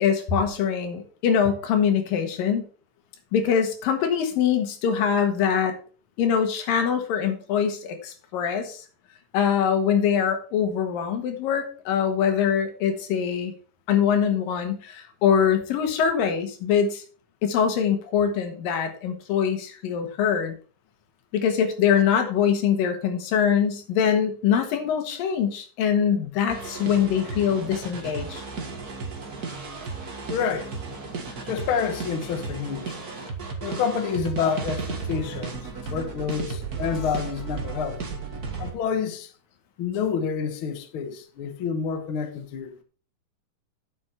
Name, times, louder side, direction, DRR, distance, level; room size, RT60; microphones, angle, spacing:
voice 1, 0.0-2.6 3.3-5.7 6.2-8.8 9.3-13.5 13.9-17.0 17.4-20.6 21.3-28.4, left 7 dB, 85° left, 3.2 m, -23 dB
sound 1, 26.5-38.7, right 4 dB, 40° right, 1.6 m, -34 dB
voice 2, 30.3-30.7 31.4-32.9 33.6-35.6 35.8-38.0 38.6-39.3 39.8-42.7, left 6 dB, 60° left, 1.4 m, -28 dB
9.8 x 7.4 x 4.4 m
omnidirectional pair, 3.9 m